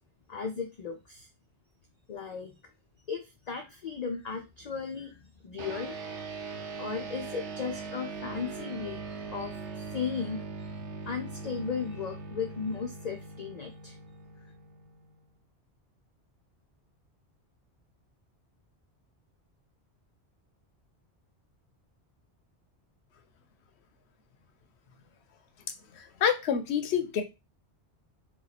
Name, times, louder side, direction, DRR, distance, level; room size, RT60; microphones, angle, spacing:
voice 1, 0.3-1.3 2.1-2.5 3.1-6.0 6.8-10.4 11.1-13.9, left 6 dB, 50° left, 2 dB, 0.5 m, -36 dB
sound 1, 5.6-15.3, right 4 dB, 80° right, 1.0 m, -41 dB
voice 2, 26.2-27.2, left 8 dB, 75° left, 8 dB, 0.9 m, -26 dB
2.9 x 2.4 x 3.9 m, 0.25 s
omnidirectional pair, 1.2 m